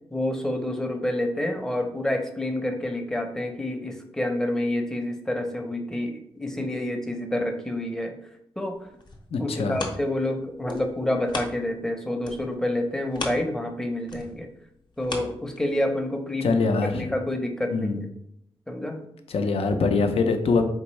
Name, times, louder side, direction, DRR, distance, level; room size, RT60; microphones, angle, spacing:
voice 1, 0.1-8.1 8.6-8.8 9.4-14.5 15.0-16.6 16.9-18.0 18.7-19.0, left 1 dB, 5° left, 4 dB, 0.6 m, -28 dB
sound 1, 8.7-11.9 12.2-16.0 16.5-16.6, left 3 dB, 45° left, 0.8 m, -38 dB
voice 2, 9.3-9.8 16.4-17.1 17.7-18.0 19.3-20.7, left 4 dB, 80° left, 6 dB, 0.5 m, -23 dB
4.4 x 3.4 x 3.1 m, 0.73 s
wide cardioid pair, 110°, 10 cm